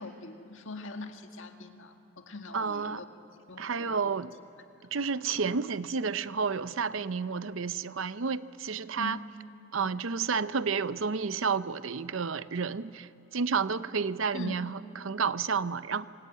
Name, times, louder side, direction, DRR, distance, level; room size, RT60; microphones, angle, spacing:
voice 1, 0.0-3.0 3.5-4.1 9.0-9.2 14.3-14.6, left 3 dB, 70° left, 5 dB, 1.8 m, -42 dB
voice 2, 2.5-3.0 3.6-4.3 4.9-9.2 9.7-16.1, right 5 dB, 75° right, 14 dB, 0.7 m, -31 dB
27.0 x 22.5 x 9.1 m, 2.8 s
head